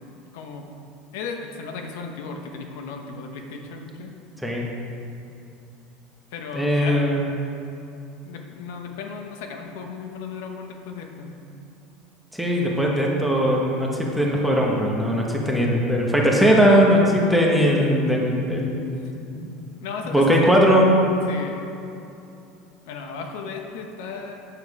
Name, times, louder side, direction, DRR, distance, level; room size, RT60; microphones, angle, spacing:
voice 1, 0.3-0.6 1.1-4.1 6.3-7.2 8.2-11.3 18.9-19.1 19.8-20.2 21.3-21.6 22.9-24.4, left 5 dB, 70° left, 3 dB, 1.0 m, -35 dB
voice 2, 6.5-7.3 12.3-18.8 19.4-19.5 20.0-20.9, equal, ahead, -3 dB, 1.0 m, -19 dB
8.8 x 7.1 x 4.8 m, 2.8 s
cardioid pair, 170°, 0 cm